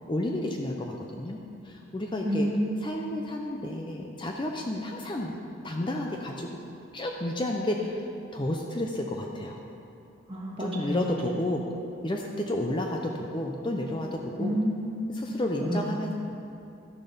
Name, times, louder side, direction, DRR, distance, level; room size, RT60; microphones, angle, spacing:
voice 1, 0.1-1.4 1.6-2.5 2.8-5.3 5.6-6.5 6.9-8.0 8.3-9.6 10.6-11.6 12.0-14.6 15.1-16.1, left 1 dB, 20° left, 1 dB, 0.5 m, -31 dB
voice 2, 2.2-3.0 10.3-11.0 14.4-15.1 15.6-15.9, equal, 25° right, -3 dB, 1.5 m, -29 dB
12.0 x 7.0 x 5.6 m, 2.7 s
head